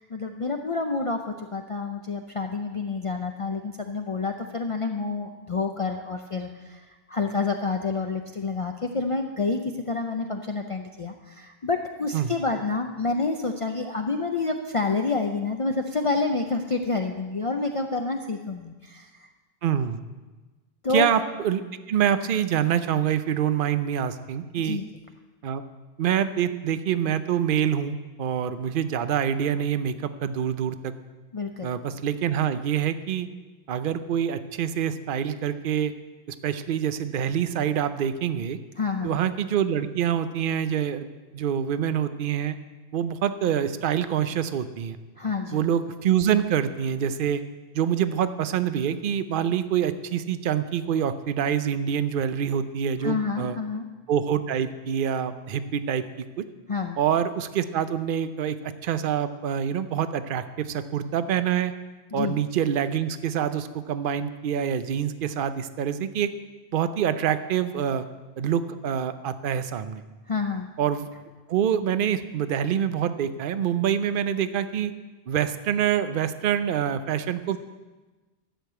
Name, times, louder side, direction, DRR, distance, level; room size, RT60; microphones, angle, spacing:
voice 1, 0.0-19.3 20.8-21.1 24.6-24.8 31.3-31.7 38.8-39.2 45.2-45.7 53.0-53.9 56.7-57.0 62.1-62.4 70.3-70.7, left 4 dB, 40° left, 4 dB, 0.6 m, -28 dB
voice 2, 19.6-20.0 20.9-21.6 21.9-24.8 25.4-25.6 26.0-30.9 31.6-33.3 33.7-35.9 36.3-38.6 39.0-41.1 41.3-42.6 42.9-45.0 45.5-47.4 47.7-53.6 54.1-56.4 57.0-61.7 62.1-66.3 66.7-68.0 68.4-70.0 70.8-71.1 71.5-74.9 75.3-77.6, right 9 dB, 60° right, 12 dB, 0.8 m, -26 dB
11.5 x 6.6 x 8.0 m, 1.2 s
omnidirectional pair, 1.1 m